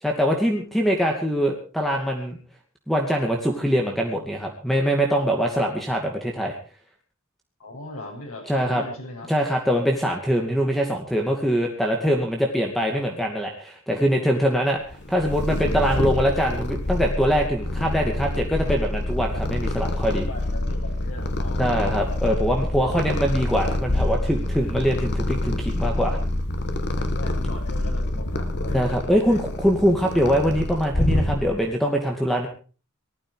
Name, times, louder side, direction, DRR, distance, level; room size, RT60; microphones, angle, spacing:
voice 1, 0.0-2.4 2.9-6.5 8.5-8.8 9.3-20.3 21.6-26.2 28.7-32.5, equal, ahead, 1 dB, 2.5 m, -23 dB
voice 2, 7.6-9.3 20.3-22.0 27.0-29.4, left 2 dB, 85° left, 0 dB, 7.5 m, -39 dB
Purr, 14.9-31.7, left 1 dB, 55° left, 2.0 m, -26 dB
19.5 x 14.0 x 4.8 m, 0.38 s
head